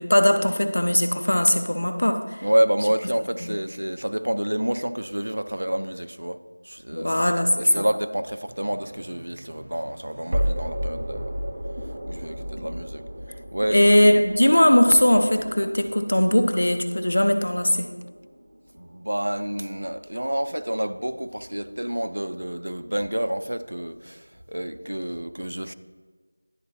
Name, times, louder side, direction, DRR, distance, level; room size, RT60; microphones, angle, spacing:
voice 1, 0.0-2.4 3.4-3.6 6.9-7.8 12.6-12.7 13.7-17.9, left 1 dB, 50° left, 0.6 m, -20 dB
voice 2, 2.4-6.4 6.6-7.1 7.6-11.3 12.1-13.0 13.5-14.2 18.8-25.7, right 1 dB, 70° right, 0.4 m, -28 dB
sound 1, 8.5-19.5, equal, 20° right, 0.5 m, -34 dB
11.0 x 3.8 x 3.1 m
figure-of-eight pair, 180°, 0 cm